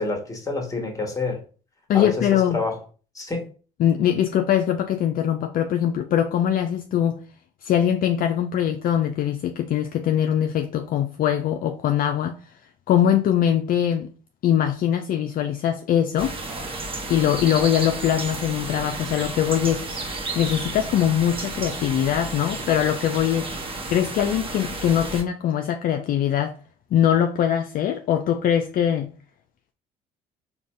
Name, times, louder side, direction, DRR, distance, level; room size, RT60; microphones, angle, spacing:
voice 1, 0.0-1.4 1.9-2.8 3.1-3.4, left 3 dB, 15° left, 1.4 m, -28 dB
voice 2, 1.9-2.6 3.8-7.2 7.6-12.4 12.9-14.1 14.4-16.4 17.1-19.8 20.4-23.5 23.9-26.6 26.9-29.1, left 10 dB, 50° left, 0.4 m, -22 dB
sound 1, 16.2-25.2, right 2 dB, 30° right, 1.0 m, -32 dB
3.9 x 2.2 x 3.1 m
hypercardioid pair, 60°, 19 cm